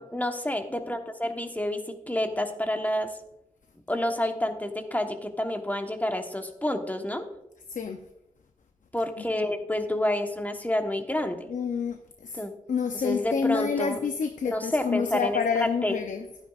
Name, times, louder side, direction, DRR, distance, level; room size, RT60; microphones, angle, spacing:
voice 1, 0.0-1.8 2.1-3.1 3.9-7.3 8.9-11.5 12.3-12.5 12.9-14.1 14.5-16.0, left 1 dB, 10° left, 5 dB, 1.1 m, -29 dB
voice 2, 11.5-12.4 12.7-16.2, left 6 dB, 70° left, 7 dB, 0.6 m, -28 dB
12.0 x 10.0 x 2.4 m, 0.88 s
cardioid pair, 65°, 14 cm